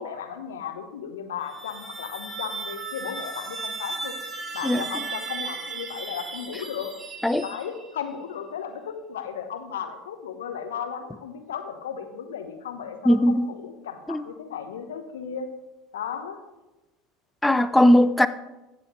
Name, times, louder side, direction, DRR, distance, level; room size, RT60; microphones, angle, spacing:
voice 1, 0.0-4.1 4.5-6.9 7.4-15.5 15.9-16.4, left 7 dB, 75° left, 1.1 m, -35 dB
sound 1, 1.4-8.0, right 4 dB, 25° right, 1.5 m, -36 dB
voice 2, 13.1-13.5 14.1-14.2 17.4-18.3, left 1 dB, 5° left, 0.6 m, -19 dB
15.0 x 7.6 x 3.2 m
figure-of-eight pair, 70°, 0 cm